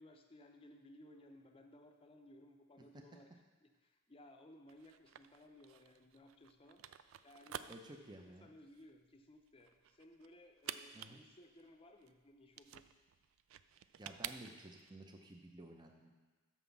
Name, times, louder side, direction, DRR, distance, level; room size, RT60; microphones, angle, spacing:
voice 1, 0.0-3.3 3.6-7.9 8.2-12.9, left 1 dB, 25° left, 5 dB, 0.6 m, -60 dB
sound 1, 4.7-14.9, right 10 dB, 70° right, 0.3 m, -51 dB
voice 2, 7.7-8.5 10.9-11.2 14.0-16.1, right 1 dB, 20° right, 2 dB, 0.6 m, -54 dB
6.1 x 5.7 x 6.9 m, 1.3 s
head